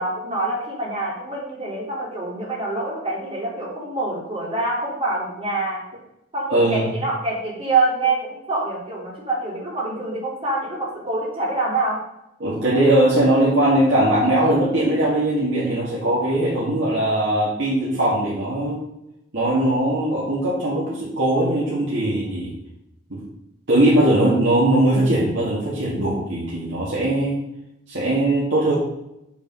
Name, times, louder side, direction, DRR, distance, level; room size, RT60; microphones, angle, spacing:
voice 1, 0.0-5.8 6.3-12.0, right 2 dB, 25° right, -4 dB, 3.5 m, -25 dB
voice 2, 6.5-6.9 12.4-18.8 19.3-22.5 23.1-23.2 23.7-27.4 27.9-28.7, right 1 dB, 60° right, -8 dB, 2.5 m, -20 dB
7.2 x 7.1 x 5.6 m, 0.84 s
head